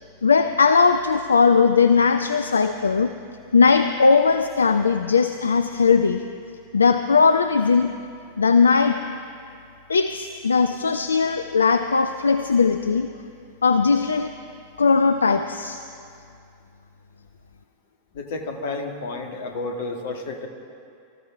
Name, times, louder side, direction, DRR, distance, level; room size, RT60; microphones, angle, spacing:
voice 1, 0.2-3.1 3.5-6.2 6.7-7.9 8.4-9.0 9.9-13.1 13.6-14.3 14.8-15.8, left 5 dB, 75° left, 10 dB, 0.4 m, -19 dB
voice 2, 18.1-20.5, left 3 dB, 55° left, 4 dB, 1.6 m, -31 dB
24.5 x 14.0 x 3.5 m, 2.5 s
figure-of-eight pair, 90°, 0 cm